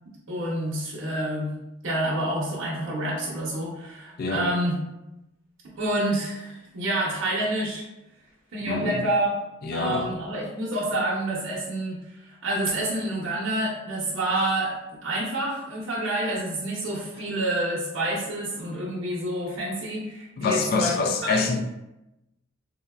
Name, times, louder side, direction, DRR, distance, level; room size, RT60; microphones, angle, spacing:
voice 1, 0.3-1.5 1.8-4.8 5.6-7.8 8.5-9.4 9.7-14.7 15.0-21.0 21.2-21.5, right 1 dB, 70° right, -5 dB, 0.7 m, -28 dB
voice 2, 8.7-9.0 9.6-10.1 20.4-21.6, left 4 dB, 50° left, 5 dB, 0.3 m, -26 dB
3.7 x 2.1 x 2.3 m, 0.94 s
head